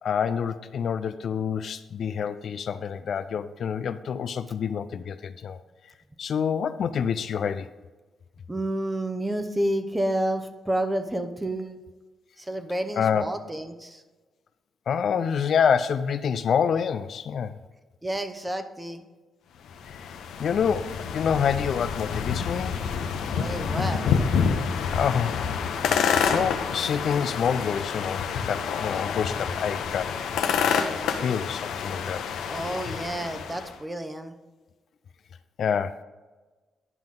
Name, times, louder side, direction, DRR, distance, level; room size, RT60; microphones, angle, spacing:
voice 1, 0.0-5.6 6.2-7.7 13.0-13.2 14.9-17.6 19.9-20.1 20.4-22.7 24.9-25.4 26.3-30.2 31.2-32.2 35.6-36.0, left 7 dB, 65° left, 11 dB, 0.4 m, -27 dB
voice 2, 8.5-11.8 12.4-14.0 18.0-19.0 23.3-24.0 32.5-34.3, right 1 dB, 15° right, 8 dB, 0.9 m, -30 dB
sound 1, 19.7-33.7, left 6 dB, 85° left, 0.8 m, -28 dB
10.5 x 5.8 x 3.8 m, 1.2 s
cardioid pair, 80°, 0 cm